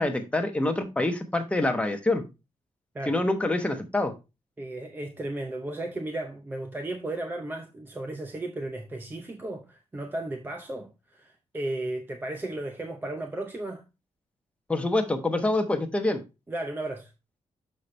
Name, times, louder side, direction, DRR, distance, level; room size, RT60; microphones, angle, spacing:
voice 1, 0.0-2.2 3.1-4.1 14.7-16.2, left 2 dB, 10° left, 1.0 m, -26 dB
voice 2, 4.6-13.8 16.5-17.1, right 2 dB, 15° right, 0.6 m, -35 dB
6.8 x 5.7 x 3.1 m
wide cardioid pair, 160°, 12 cm